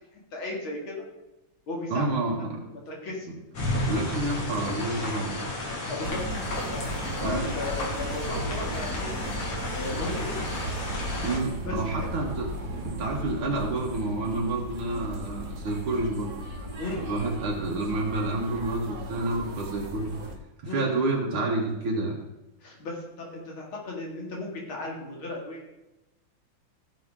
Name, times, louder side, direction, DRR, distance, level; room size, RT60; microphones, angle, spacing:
voice 1, 0.1-1.0 1.7-2.1 2.6-3.3 5.9-6.2 6.5-6.8 7.2-9.2 9.7-10.9 11.6-12.1 13.1-13.2 16.8-17.1 20.6-20.9 22.6-25.6, left 2 dB, 70° left, -2 dB, 3.3 m, -36 dB
voice 2, 1.9-2.6 3.9-5.4 7.2-7.5 11.2-16.3 17.0-20.1 20.7-22.2, right 2 dB, 75° right, -2 dB, 2.3 m, -29 dB
sound 1, 3.5-11.4, left 2 dB, 90° left, 3.3 m, -32 dB
sound 2, 6.0-20.4, right 1 dB, 50° right, 2.1 m, -36 dB
16.5 x 7.0 x 3.7 m, 0.99 s
omnidirectional pair, 2.3 m